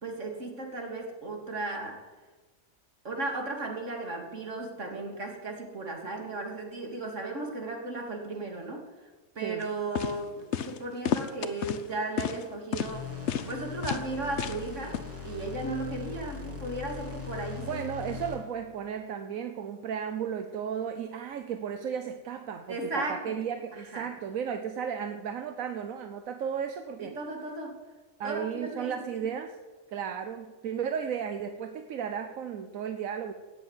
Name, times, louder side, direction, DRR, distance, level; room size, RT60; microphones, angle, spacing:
voice 1, 0.0-2.1 3.0-13.1 13.5-17.8 22.7-23.4 23.7-24.1 27.0-27.8 28.2-29.2, right 2 dB, 65° right, 2 dB, 3.0 m, -36 dB
sound 1, 9.6-9.7 10.0-10.2 10.5-10.8 11.1-11.8 12.2-12.4 12.7-12.9 13.3-13.5 13.8-14.0 14.4-14.6 14.9-15.0, left 8 dB, 60° left, 1.1 m, -30 dB
sound 2, 12.9-18.6, left 6 dB, 10° right, 2.6 m, -40 dB
voice 2, 17.6-27.2 28.2-29.5 29.9-33.3, right 7 dB, 85° right, 8 dB, 1.3 m, -34 dB
16.5 x 8.1 x 9.8 m, 1.3 s
omnidirectional pair, 1.4 m